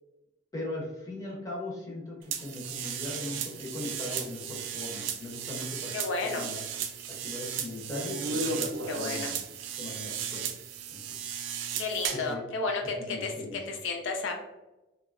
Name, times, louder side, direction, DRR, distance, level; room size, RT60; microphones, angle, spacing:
voice 1, 0.5-5.9 6.2-6.6 7.2-9.4 9.8-10.5 10.9-11.3 12.3-12.4 13.1-13.6, left 2 dB, 15° left, -4 dB, 0.7 m, -39 dB
sound 1, 2.3-12.3, right 7 dB, 80° right, 0.3 m, -35 dB
voice 2, 5.9-6.5 8.9-9.3 11.8-13.3 13.7-14.3, left 3 dB, 80° left, 3 dB, 0.4 m, -32 dB
2.8 x 2.3 x 2.4 m, 1.0 s
head